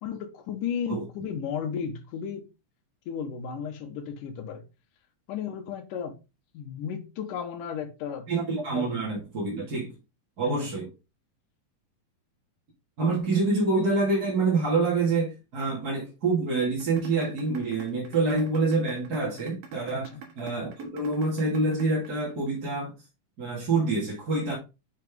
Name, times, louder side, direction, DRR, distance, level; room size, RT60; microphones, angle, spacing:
voice 1, 0.0-2.5 3.1-4.6 5.3-6.2 6.5-8.3 8.8-8.9 10.4-10.7 19.9-20.3, left 7 dB, 80° left, 2.6 m, -34 dB
voice 2, 8.3-9.9 10.4-10.9 13.0-20.1 20.4-22.9 23.4-24.5, right 3 dB, 35° right, 2.2 m, -26 dB
sound 1, 16.8-22.8, right 7 dB, 65° right, 2.6 m, -44 dB
6.4 x 6.0 x 3.5 m
omnidirectional pair, 3.7 m